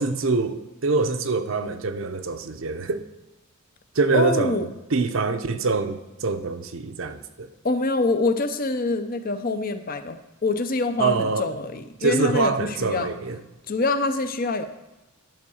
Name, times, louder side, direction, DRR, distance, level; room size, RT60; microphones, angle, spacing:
voice 1, 0.0-3.0 4.0-4.6 4.9-7.5 11.0-11.5 12.0-13.4, right 4 dB, 65° right, 9 dB, 0.6 m, -24 dB
voice 2, 4.1-4.7 7.6-13.1 13.7-14.6, left 3 dB, 40° left, 9 dB, 0.6 m, -25 dB
11.0 x 4.6 x 7.1 m, 1.0 s
head